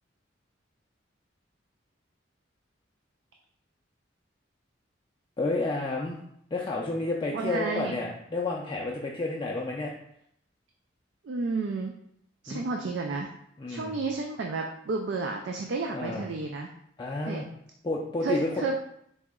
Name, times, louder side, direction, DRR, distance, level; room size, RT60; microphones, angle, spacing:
voice 1, 5.4-6.2 6.5-9.9 12.5-12.7 13.6-14.0 15.9-16.2 17.0-17.5 17.8-18.6, left 2 dB, 25° left, -2 dB, 0.4 m, -30 dB
voice 2, 7.3-8.0 11.2-11.9 12.4-13.3 13.7-16.7 17.3-17.4 18.2-18.8, right 3 dB, 65° right, 2 dB, 0.4 m, -31 dB
4.1 x 2.9 x 3.6 m, 0.72 s
head